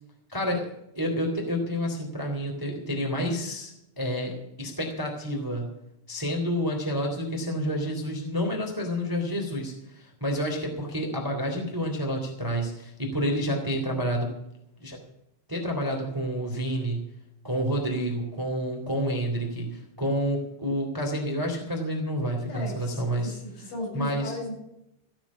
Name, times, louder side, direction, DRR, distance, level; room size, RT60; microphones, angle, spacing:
voice 1, 0.3-0.7 0.9-5.7 6.1-14.3 14.8-15.0 15.5-17.1 17.4-23.3 23.9-24.3, equal, 5° right, 1 dB, 2.1 m, -29 dB
voice 2, 22.5-24.5, left 1 dB, 85° left, -3 dB, 10.0 m, -36 dB
16.0 x 7.2 x 8.5 m, 0.81 s
omnidirectional pair, 5.3 m